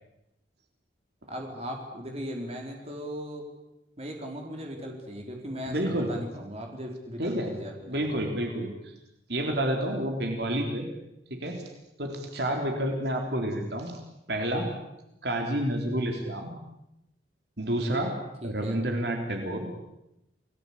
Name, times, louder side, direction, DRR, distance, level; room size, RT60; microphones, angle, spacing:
voice 1, 1.3-3.5 4.0-8.0 18.4-18.8, equal, 35° right, 2 dB, 4.6 m, -38 dB
voice 2, 5.7-6.1 7.2-7.5 7.9-8.7 9.3-10.9 11.3-11.6 12.0-14.0 14.3-14.7 15.2-16.5 17.6-18.1 18.4-19.7, right 1 dB, 60° right, 3 dB, 3.7 m, -29 dB
28.5 x 19.5 x 8.5 m, 0.88 s
head